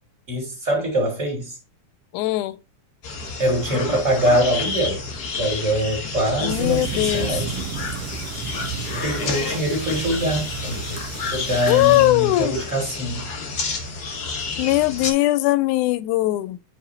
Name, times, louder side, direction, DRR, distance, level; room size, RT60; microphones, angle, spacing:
voice 1, 0.3-1.6 3.4-5.0 5.3-7.5 9.0-13.2, equal, 25° right, 2.4 m, -24 dB
voice 2, 2.1-2.6 6.4-7.4 11.7-12.5 14.6-16.6, left 16 dB, 85° left, 2.0 m, -20 dB
sound 1, 3.0-15.1, left 4 dB, 65° left, 0.9 m, -30 dB
sound 2, 6.5-12.1, right 8 dB, 70° right, 1.5 m, -33 dB
9.9 x 4.6 x 2.7 m
omnidirectional pair, 3.5 m